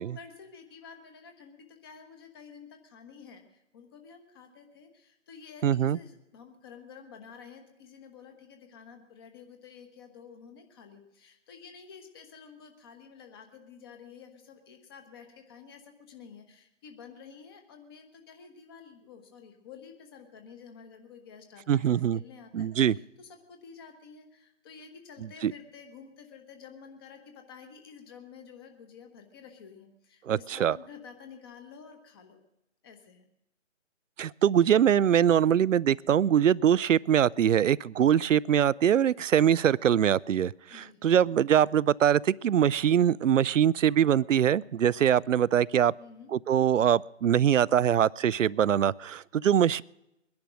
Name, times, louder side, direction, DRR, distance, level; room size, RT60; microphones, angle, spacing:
voice 1, 0.0-32.4 32.8-33.2 40.7-41.0 46.0-46.3, left 6 dB, 20° left, 6 dB, 1.2 m, -50 dB
voice 2, 5.6-6.0 21.7-22.2 22.5-23.0 25.4-25.5 30.3-30.8 34.2-45.9 46.3-49.8, right 9 dB, 70° right, 22 dB, 0.5 m, -23 dB
21.5 x 10.5 x 6.3 m, 0.87 s
figure-of-eight pair, 155°, 39 cm